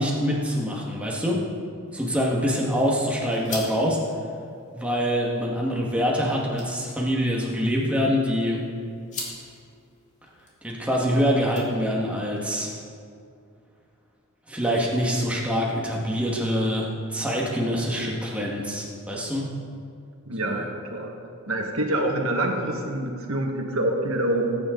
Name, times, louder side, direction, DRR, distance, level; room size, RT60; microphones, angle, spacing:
voice 1, 0.0-1.4 1.9-4.0 4.7-8.6 10.6-12.8 14.5-19.5, equal, 5° right, -3 dB, 1.8 m, -25 dB
sound 1, 1.9-12.2, left 3 dB, 35° left, 2.6 m, -44 dB
voice 2, 20.3-21.2 21.5-24.6, right 1 dB, 70° right, 2 dB, 1.7 m, -26 dB
20.0 x 9.6 x 3.9 m, 2.4 s
head